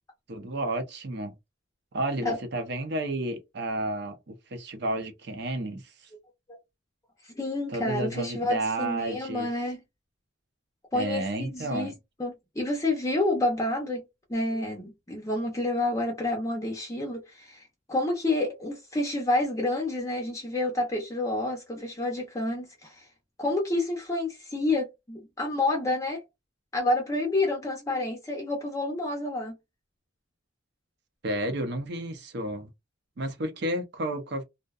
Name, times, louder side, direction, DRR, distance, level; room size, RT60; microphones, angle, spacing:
voice 1, 0.3-1.4 1.9-6.1 7.7-9.5 10.9-11.9 31.2-32.7 33.2-34.4, right 1 dB, 55° right, 0.6 m, -31 dB
voice 2, 7.2-9.8 10.9-11.9 12.2-14.0 14.3-23.1 23.4-26.2 26.7-29.5, left 2 dB, 15° left, 0.5 m, -29 dB
2.6 x 2.1 x 2.3 m
head